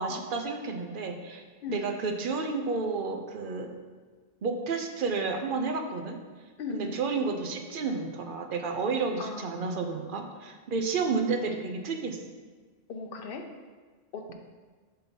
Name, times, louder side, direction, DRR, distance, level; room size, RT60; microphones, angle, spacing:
voice 1, 0.0-1.4 1.7-3.7 4.4-6.2 6.7-12.2, right 4 dB, 55° right, 5 dB, 0.8 m, -31 dB
voice 2, 6.6-7.0 9.2-9.8 12.9-13.4 14.1-14.3, left 4 dB, 55° left, 4 dB, 0.8 m, -37 dB
5.7 x 4.5 x 5.2 m, 1.4 s
omnidirectional pair, 1.2 m